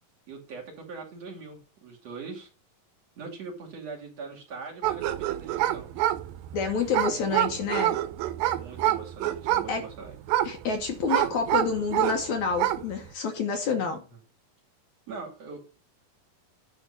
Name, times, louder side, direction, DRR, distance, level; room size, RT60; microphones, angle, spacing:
voice 1, 0.3-2.5 3.2-5.9 8.4-10.2 13.8-13.9 15.1-15.6, right 4 dB, 50° right, 3.6 m, -41 dB
sound 1, 4.8-12.2 12.5-12.9, right 14 dB, 90° right, 2.6 m, -27 dB
voice 2, 6.5-8.0 9.7-9.9 10.4-14.0, left 5 dB, 65° left, 2.1 m, -28 dB
10.5 x 3.6 x 6.6 m
omnidirectional pair, 4.0 m